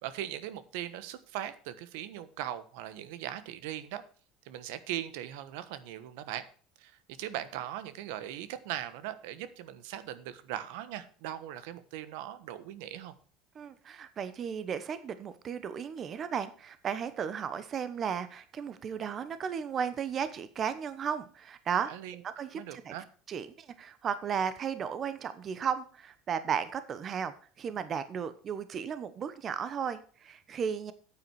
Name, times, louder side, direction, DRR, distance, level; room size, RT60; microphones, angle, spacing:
voice 1, 0.0-4.0 4.4-6.5 6.8-13.1 21.9-22.2 22.5-23.0, right 12 dB, 80° right, 13 dB, 1.2 m, -39 dB
voice 2, 13.5-21.9 22.2-22.9 23.3-30.9, right 7 dB, 30° right, 12 dB, 1.0 m, -35 dB
9.5 x 8.8 x 4.7 m, 0.42 s
cardioid pair, 145°, 0 cm